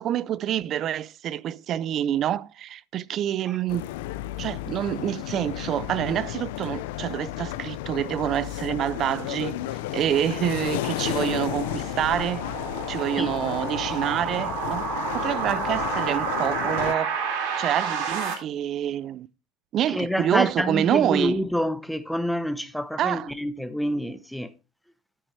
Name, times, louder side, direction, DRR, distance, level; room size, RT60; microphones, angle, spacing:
voice 1, 0.0-3.9 4.4-9.6 9.9-12.4 12.9-14.9 15.1-17.2 17.6-19.3 19.7-21.4 23.0-23.3, right 11 dB, 45° right, 0.5 m, -27 dB
sound 1, 3.7-16.9, left 14 dB, 80° left, 0.7 m, -33 dB
sound 2, 9.7-18.3, right 6 dB, 70° right, 3.7 m, -31 dB
voice 2, 19.9-24.5, equal, ahead, 0.9 m, -27 dB
10.0 x 8.9 x 3.3 m
supercardioid pair, 115°, 0 cm